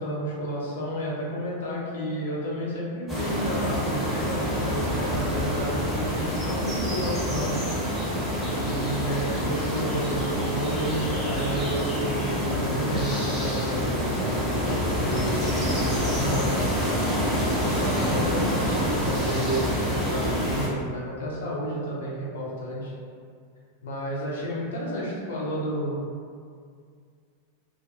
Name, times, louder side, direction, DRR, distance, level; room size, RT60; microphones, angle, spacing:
voice 1, 0.0-7.6 8.6-17.1 17.7-22.9 23.8-25.9, equal, 60° left, -6 dB, 0.6 m, -31 dB
sound 1, 3.1-20.7, equal, ahead, 0.9 m, -27 dB
2.3 x 2.2 x 2.7 m, 2.1 s
figure-of-eight pair, 90°, 0 cm